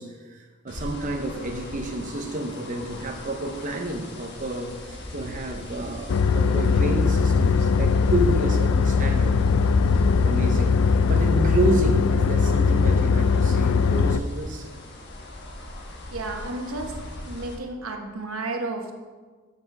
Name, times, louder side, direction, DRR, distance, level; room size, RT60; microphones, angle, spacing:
voice 1, 0.0-9.3 10.2-14.7, right 1 dB, 40° right, 2 dB, 0.8 m, -30 dB
sound 1, 0.7-17.5, left 1 dB, 55° left, 1.3 m, -38 dB
sound 2, 6.1-14.2, left 5 dB, 75° left, 0.4 m, -20 dB
voice 2, 16.1-16.9 17.2-18.9, right 2 dB, 80° right, 3 dB, 1.1 m, -32 dB
7.7 x 5.8 x 6.0 m, 1.4 s
head